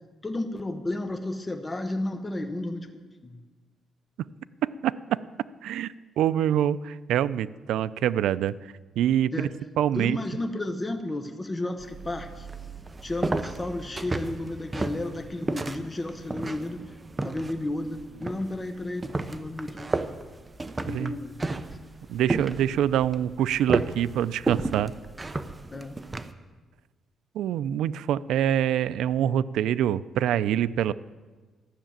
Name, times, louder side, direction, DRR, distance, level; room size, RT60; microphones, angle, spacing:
voice 1, 0.2-3.4 9.3-9.5 9.9-12.5 13.0-19.9 20.8-21.9 25.7-26.1, left 2 dB, 15° left, 6 dB, 0.8 m, -33 dB
voice 2, 4.6-5.2 5.6-8.5 9.0-9.5 9.8-10.2 20.9-21.1 22.1-24.9 27.3-30.9, right 10 dB, 85° right, 15 dB, 0.4 m, -25 dB
sound 1, 11.8-26.3, right 3 dB, 15° right, 0.6 m, -33 dB
13.0 x 6.6 x 8.8 m, 1.3 s
cardioid pair, 145°, 0 cm